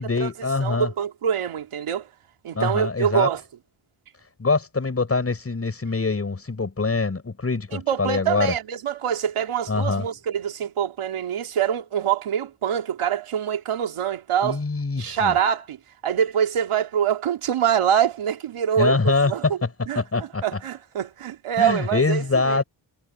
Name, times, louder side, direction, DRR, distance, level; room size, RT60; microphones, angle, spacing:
voice 1, 0.0-0.9 2.5-3.3 4.4-8.5 9.7-10.0 14.4-15.3 18.8-19.3 20.0-20.4 21.6-22.6, left 3 dB, 30° left, 6.1 m, -24 dB
voice 2, 0.6-2.1 2.4-3.4 7.7-14.6 15.0-15.8 16.0-19.6 19.9-22.6, right 9 dB, 85° right, 2.4 m, -25 dB
wide cardioid pair, 120°, 49 cm